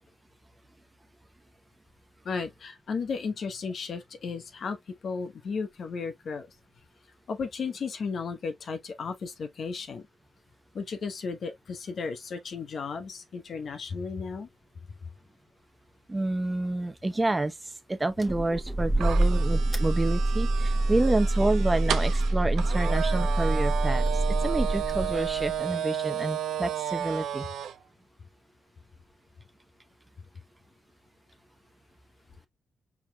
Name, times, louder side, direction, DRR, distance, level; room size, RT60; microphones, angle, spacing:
voice 1, 2.2-4.8 5.0-6.5 7.3-10.0 10.7-14.5, left 5 dB, 65° left, 0.9 m, -34 dB
voice 2, 16.1-17.6 17.9-24.1 24.4-27.5, right 2 dB, 25° right, 0.8 m, -28 dB
sound 1, 18.2-25.6, right 2 dB, ahead, 1.2 m, -26 dB
sound 2, 19.0-27.7, right 10 dB, 85° right, 0.4 m, -33 dB
4.7 x 3.7 x 2.2 m
cardioid pair, 60°, 0 cm